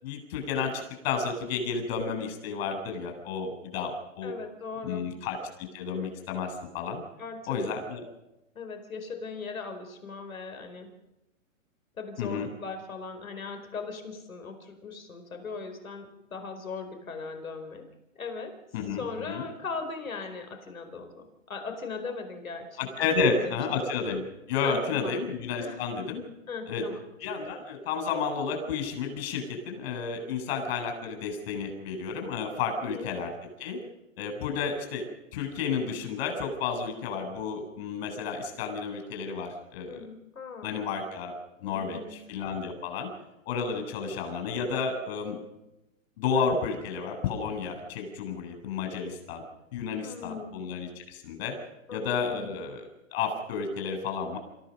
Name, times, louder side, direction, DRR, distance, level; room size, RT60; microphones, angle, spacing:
voice 1, 0.0-0.7 1.0-4.3 4.8-7.0 7.5-8.0 12.2-12.5 18.7-19.5 22.8-24.2 24.5-26.2 26.7-26.8 27.2-33.3 33.6-33.8 34.2-35.0 35.3-40.0 40.6-43.1 43.5-45.4 46.2-49.4 49.7-51.6 51.9-52.8 53.1-54.4, left 5 dB, 50° left, 5 dB, 7.4 m, -31 dB
voice 2, 4.2-5.1 7.2-7.4 8.5-10.9 12.0-17.9 18.2-18.5 18.9-22.8 23.1-23.8 24.6-25.1 25.6-25.8 26.5-27.0 32.8-33.1 39.9-40.7 41.6-42.2 50.0-50.5 51.9-52.5, left 4 dB, 85° left, 6 dB, 4.7 m, -39 dB
27.5 x 15.0 x 6.7 m, 0.94 s
hypercardioid pair, 135°, 40 cm